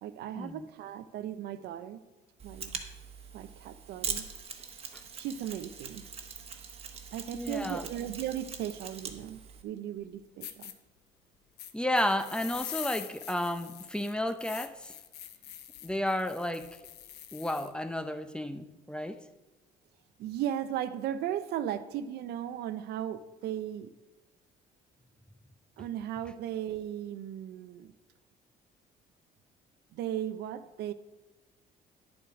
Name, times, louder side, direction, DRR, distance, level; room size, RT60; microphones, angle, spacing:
voice 1, 0.0-2.0 2.4-2.8 3.3-4.3 5.2-6.0 7.1-10.7 20.2-23.9 25.8-27.9 29.9-30.9, right 10 dB, 75° right, 12 dB, 0.6 m, -36 dB
Mechanisms, 2.4-9.6, right 6 dB, 35° right, 1.2 m, -42 dB
voice 2, 7.3-7.8 11.7-14.9 15.8-16.7 17.3-19.2, left 1 dB, 5° left, 10 dB, 0.6 m, -32 dB
sound 1, 10.0-10.1 10.4-10.7 11.6-17.7, left 11 dB, 80° left, 0.8 m, -44 dB
10.0 x 7.1 x 4.8 m, 1.1 s
cardioid pair, 110°, 17 cm